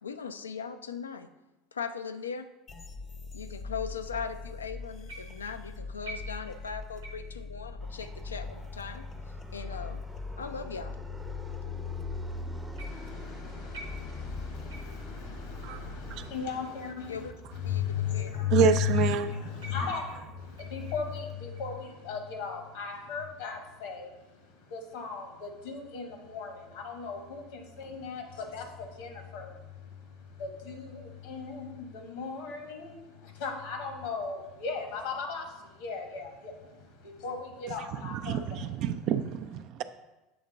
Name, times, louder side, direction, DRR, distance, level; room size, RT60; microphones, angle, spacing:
voice 1, 0.0-1.3 1.7-2.5 3.3-9.1 9.5-10.0 10.4-11.1 17.1-17.3 17.6-17.8 18.1-18.3, left 6 dB, 85° left, 9 dB, 0.3 m, -39 dB
sound 1, 2.7-16.2, left 4 dB, 40° left, 0.7 m, -42 dB
sound 2, 5.1-5.6 6.0-6.7 7.0-7.4 8.0-8.2 9.0-9.1 9.9-10.0 10.9-11.0 12.8-13.2 13.7-14.3 14.7-15.1 15.7-15.9 16.6-16.7 17.6-17.7 18.6-19.3 19.6-21.2 21.5-22.0 22.5-22.9, right 2 dB, 75° right, 0.8 m, -48 dB
Fixed-wing aircraft airplane, 7.8-21.3, left 2 dB, 10° right, 0.6 m, -45 dB
voice 2, 12.9-38.8, left 7 dB, 65° left, 4 dB, 1.1 m, -36 dB
voice 3, 18.5-19.3 38.1-39.8, right 7 dB, 55° right, 10 dB, 0.3 m, -27 dB
7.7 x 3.6 x 3.8 m, 1.0 s
figure-of-eight pair, 70°, 0 cm